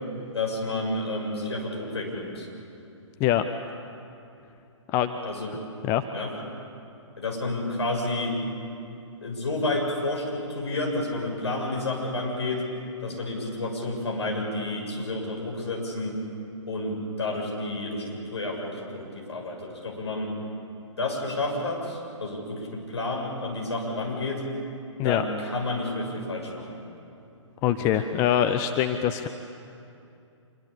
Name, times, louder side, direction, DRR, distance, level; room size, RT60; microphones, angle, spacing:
voice 1, 0.3-2.5 5.2-5.5 6.1-6.3 7.2-8.4 9.2-12.6 13.0-16.2 16.7-20.3 21.0-24.4 25.0-26.8, left 2 dB, 60° left, 0 dB, 7.0 m, -30 dB
voice 2, 27.6-29.3, left 10 dB, 15° left, 8 dB, 0.6 m, -23 dB
26.0 x 23.5 x 8.6 m, 2.6 s
figure-of-eight pair, 130°, 16 cm